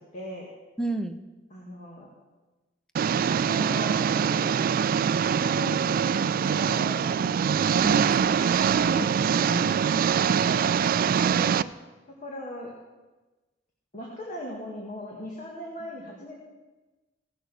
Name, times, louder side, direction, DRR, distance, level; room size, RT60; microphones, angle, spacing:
voice 1, 0.1-0.5 1.5-2.1 3.2-7.4 9.5-10.7 11.2-11.6 12.2-12.7 13.9-16.3, equal, 40° left, -3 dB, 1.9 m, -39 dB
voice 2, 0.8-1.2 7.8-9.7, right 1 dB, 5° left, 8 dB, 0.6 m, -34 dB
Engine, 3.0-11.6, right 7 dB, 50° right, 0.3 m, -23 dB
17.0 x 6.2 x 6.7 m, 1.2 s
head